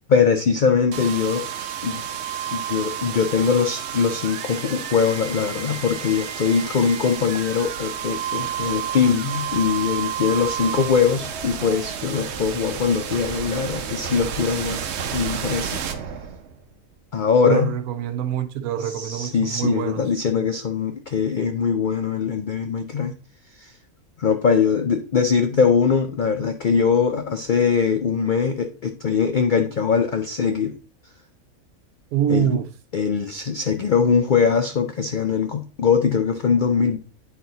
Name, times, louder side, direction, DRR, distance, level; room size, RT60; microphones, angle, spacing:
voice 1, 0.1-1.5 1.8-2.1 2.5-14.9 15.1-15.8 17.1-17.7 18.8-23.2 23.6-23.7 24.2-30.7 32.3-32.6 32.9-37.0, left 6 dB, 80° left, 0.4 m, -21 dB
sound 1, 0.9-16.8, right 8 dB, 60° right, 0.9 m, -31 dB
voice 2, 17.4-20.0 32.1-32.7, right 10 dB, 85° right, 1.2 m, -25 dB
8.9 x 4.3 x 3.8 m
omnidirectional pair, 1.5 m